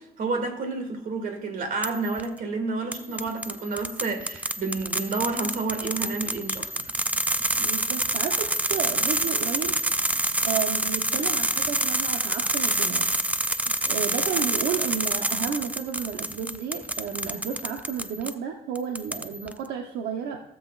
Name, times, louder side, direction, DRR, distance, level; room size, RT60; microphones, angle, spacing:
voice 1, 0.2-6.9, right 3 dB, 55° right, 5 dB, 2.3 m, -30 dB
sound 1, 1.8-2.2 2.9-18.3 18.8-19.5, right 1 dB, 10° right, 0.5 m, -27 dB
voice 2, 7.6-13.1 13.6-20.4, right 7 dB, 80° right, 3 dB, 0.9 m, -32 dB
16.5 x 7.5 x 2.4 m, 0.93 s
cardioid pair, 110°, 17 cm